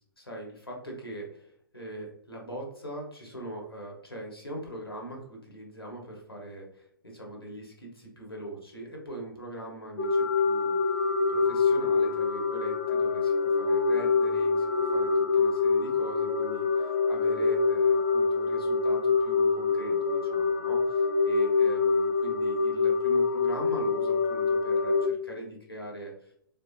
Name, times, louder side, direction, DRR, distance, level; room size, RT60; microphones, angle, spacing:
voice 1, 0.2-11.0 11.3-26.3, right 1 dB, 85° left, 0 dB, 1.3 m, -41 dB
sound 1, 10.0-25.1, left 4 dB, 40° left, 0.6 m, -25 dB
4.0 x 2.7 x 2.6 m, 0.69 s
figure-of-eight pair, 115°, 12 cm